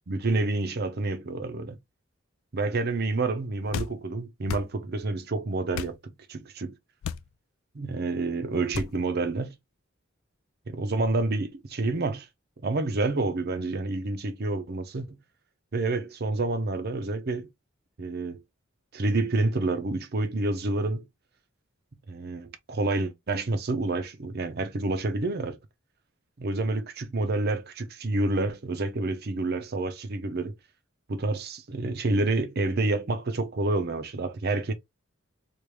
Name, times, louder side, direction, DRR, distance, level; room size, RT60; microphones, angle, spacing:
voice 1, 0.1-1.8 2.5-6.7 7.7-9.5 10.7-12.3 12.6-15.2 15.7-17.5 18.0-18.4 18.9-21.0 22.1-25.6 26.4-30.5 31.1-34.7, right 2 dB, 50° right, 0.7 m, -28 dB
sound 1, 3.7-4.0 4.5-4.7 5.7-6.0 7.0-7.3 8.7-8.9, left 7 dB, 80° left, 0.3 m, -33 dB
3.2 x 2.5 x 3.2 m
head